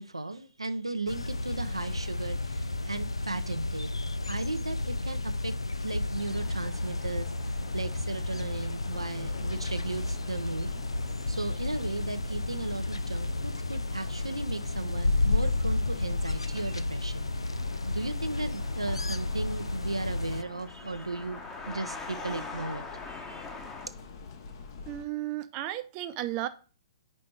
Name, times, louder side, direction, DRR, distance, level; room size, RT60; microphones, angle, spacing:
voice 1, 0.0-3.9 4.3-5.5 5.8-7.3 7.7-10.7 11.3-17.6 17.8-21.4 21.7-23.5, right 2 dB, 90° right, 0.5 m, -36 dB
sound 1, 1.1-20.4, left 2 dB, 85° left, 0.4 m, -32 dB
sound 2, 6.2-23.9, left 3 dB, 15° left, 1.0 m, -47 dB
sound 3, 8.9-25.0, left 5 dB, 50° left, 1.0 m, -48 dB
voice 2, 24.9-26.5, right 14 dB, 30° right, 0.6 m, -34 dB
5.4 x 4.2 x 4.5 m
figure-of-eight pair, 120°, 3 cm